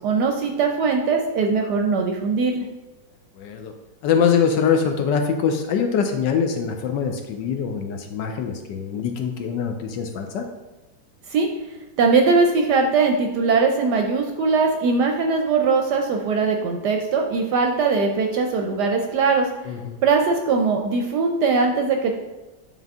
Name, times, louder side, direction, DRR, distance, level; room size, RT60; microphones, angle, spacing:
voice 1, 0.0-2.6 11.3-11.5 12.0-19.5 20.0-22.1, right 4 dB, 70° right, 3 dB, 1.0 m, -20 dB
voice 2, 3.4-3.7 4.0-10.5 19.7-20.0, left 6 dB, 75° left, 5 dB, 1.2 m, -23 dB
9.2 x 3.6 x 3.5 m, 1.1 s
omnidirectional pair, 2.2 m